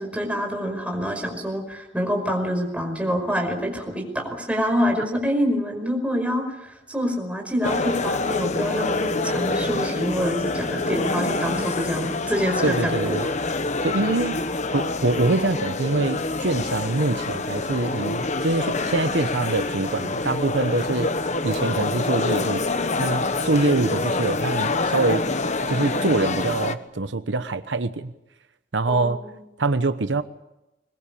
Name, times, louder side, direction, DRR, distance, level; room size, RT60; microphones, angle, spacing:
voice 1, 0.0-13.3 28.9-29.4, equal, 5° right, 3 dB, 5.2 m, -26 dB
sound 1, 7.6-26.7, left 3 dB, 40° left, 1.2 m, -26 dB
voice 2, 12.6-13.2 13.8-14.4 14.7-21.1 21.4-22.6 23.0-25.2 25.7-28.1 28.7-29.2 29.6-30.2, right 2 dB, 80° right, 11 dB, 1.0 m, -24 dB
22.0 x 22.0 x 8.6 m, 0.94 s
head